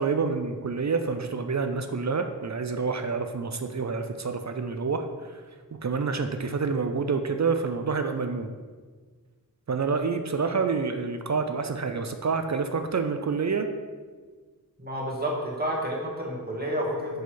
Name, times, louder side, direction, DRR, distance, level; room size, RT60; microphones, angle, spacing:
voice 1, 0.0-5.4 5.8-8.5 9.7-13.7, right 4 dB, 50° right, 7 dB, 0.5 m, -28 dB
voice 2, 14.8-17.2, equal, 25° right, -4 dB, 1.8 m, -30 dB
6.5 x 4.1 x 4.6 m, 1.5 s
wide cardioid pair, 50°, 37 cm